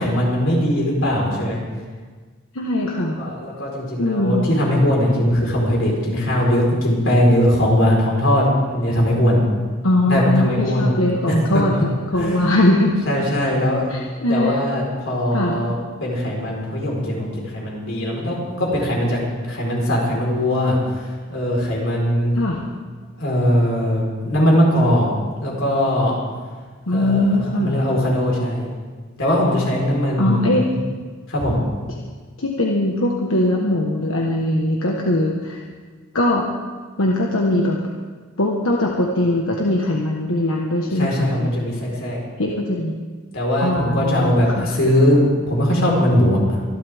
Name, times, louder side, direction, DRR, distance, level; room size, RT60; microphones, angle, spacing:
voice 1, 0.0-1.6 3.2-9.4 10.1-11.0 11.2-11.4 11.7-11.8 12.2-12.5 13.1-13.9 14.3-20.8 21.3-22.3 23.2-25.1 25.4-26.1 26.9-28.7 29.2-30.5 31.3-31.6 41.0-42.2 43.3-45.2 45.5-46.4, equal, 70° left, -3 dB, 4.5 m, -20 dB
voice 2, 2.5-3.2 4.0-4.5 9.8-11.7 12.1-12.9 13.9-14.6 15.3-15.6 22.3-22.6 26.9-27.8 30.2-30.7 32.4-35.6 36.1-36.5 37.0-37.8 38.4-41.7 42.4-42.9 43.6-44.7, left 1 dB, 90° left, -1 dB, 1.4 m, -20 dB
24.5 x 12.0 x 3.6 m, 1.5 s
head